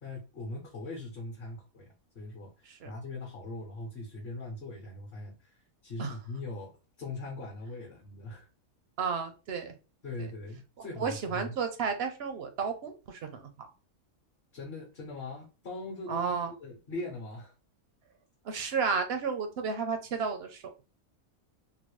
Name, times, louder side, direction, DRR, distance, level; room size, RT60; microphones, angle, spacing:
voice 1, 0.0-6.7 7.0-8.5 10.0-11.5 14.5-17.5, left 2 dB, 50° left, 0 dB, 1.0 m, -41 dB
voice 2, 9.0-9.7 11.0-13.7 16.1-16.5 18.4-20.6, right 5 dB, 65° right, 6 dB, 0.6 m, -32 dB
3.7 x 2.1 x 3.0 m, 0.32 s
omnidirectional pair, 1.5 m